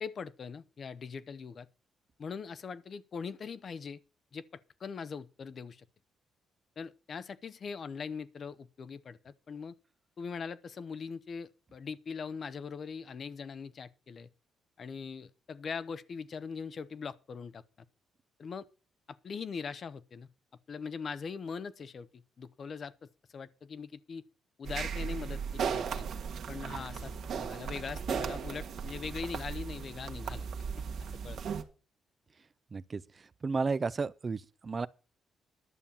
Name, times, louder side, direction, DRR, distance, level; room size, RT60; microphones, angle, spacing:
voice 1, 0.0-1.7 2.2-4.0 4.3-4.4 4.8-5.8 6.8-9.7 10.2-14.3 14.8-17.6 18.4-18.7 19.1-20.3 20.7-24.2 24.6-26.1 26.5-30.5 31.2-31.4, left 5 dB, 50° left, 0.8 m, -41 dB
sound 1, 24.6-31.6, right 6 dB, 65° right, 1.6 m, -36 dB
voice 2, 32.7-34.9, right 4 dB, 35° right, 0.6 m, -33 dB
11.0 x 6.9 x 7.2 m
cardioid pair, 90°, 0 cm